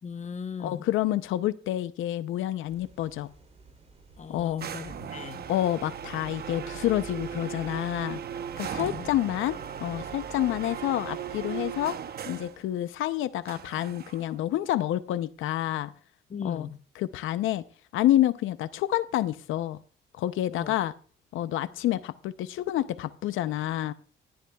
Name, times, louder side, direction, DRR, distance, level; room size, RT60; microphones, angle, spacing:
voice 1, 0.0-0.9 4.2-5.5 8.8-9.1 16.3-16.8 20.5-20.8, left 6 dB, 35° left, 0.9 m, -38 dB
voice 2, 0.6-3.3 4.3-4.7 5.5-8.2 8.6-12.0 12.3-15.9 16.4-16.7 17.0-17.6 17.9-19.8 20.1-20.9 21.3-23.9, left 13 dB, 85° left, 0.6 m, -28 dB
sound 1, 2.6-11.9, right 3 dB, 35° right, 3.1 m, -56 dB
sound 2, 4.6-12.6 13.5-14.4, right 8 dB, 50° right, 0.9 m, -37 dB
18.0 x 11.5 x 2.3 m
cardioid pair, 90°, 20 cm